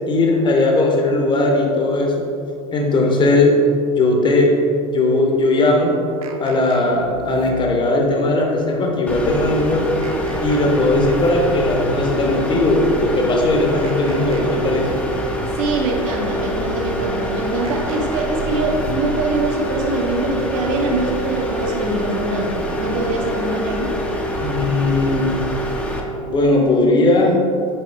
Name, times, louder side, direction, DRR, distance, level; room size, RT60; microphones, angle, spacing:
voice 1, 0.1-2.1 2.7-3.5 4.0-4.5 4.9-5.9 6.4-9.8 10.4-15.0 24.4-25.4 26.2-27.4, left 2 dB, 25° left, 0 dB, 1.2 m, -18 dB
sound 1, 6.2-8.0 10.0-11.7 13.8-15.4 17.6-19.2, right 4 dB, 75° right, 0.6 m, -33 dB
sound 2, 9.1-26.0, equal, 5° left, 0.9 m, -25 dB
voice 2, 15.5-23.9, right 2 dB, 60° right, 0 dB, 1.2 m, -23 dB
6.8 x 4.7 x 3.6 m, 2.6 s
hypercardioid pair, 85°, 19 cm